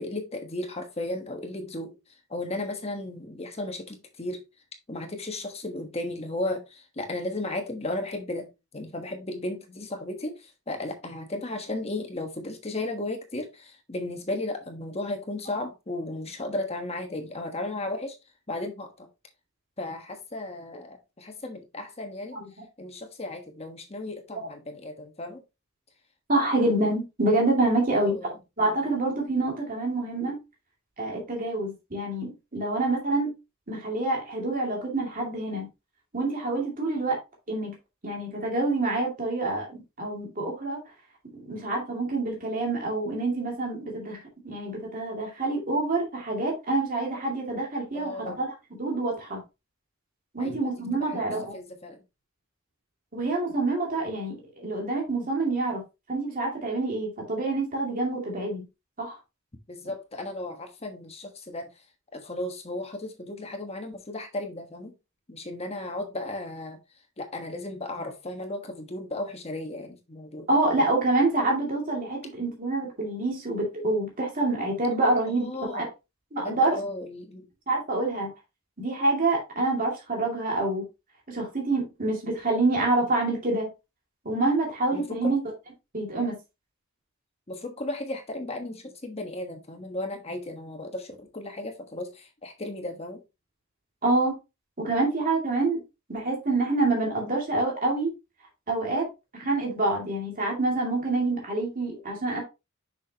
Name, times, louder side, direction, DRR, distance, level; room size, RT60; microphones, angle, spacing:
voice 1, 0.0-4.4 4.9-18.2 18.5-19.1 19.8-22.4 22.8-25.4 27.9-28.4 47.9-48.4 50.4-52.0 59.7-61.8 62.1-64.9 65.3-66.8 67.2-70.5 75.3-75.9 76.4-77.5 84.9-85.4 87.5-93.2, left 2 dB, 30° left, 1.3 m, -35 dB
voice 2, 26.3-28.2 28.6-30.4 31.0-33.3 33.7-35.7 36.1-37.2 37.5-37.7 38.0-40.8 41.4-44.2 44.4-49.4 50.3-51.5 53.1-55.8 56.1-58.6 59.0-59.1 70.5-75.8 76.3-76.8 77.7-78.3 78.8-80.8 81.3-83.7 84.2-85.4 85.9-86.3 94.0-94.3 94.8-95.8 96.1-98.1 98.7-99.0 99.4-102.4, right 2 dB, 40° right, 2.5 m, -27 dB
6.4 x 6.3 x 2.9 m
head